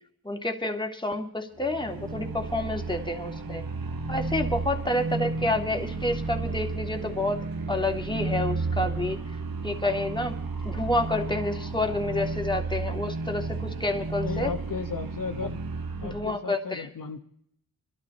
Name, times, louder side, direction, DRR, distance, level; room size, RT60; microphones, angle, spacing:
voice 1, 0.2-3.6 4.1-7.4 7.7-9.2 9.6-10.4 10.6-14.5 16.1-16.9, left 2 dB, 15° left, 4 dB, 2.1 m, -29 dB
sound 1, 1.6-16.3, right 3 dB, 80° right, 1.4 m, -33 dB
voice 2, 14.2-15.6 16.0-17.2, left 5 dB, 65° left, 5 dB, 1.1 m, -35 dB
25.0 x 12.0 x 4.1 m, 0.70 s
wide cardioid pair, 65°, 35 cm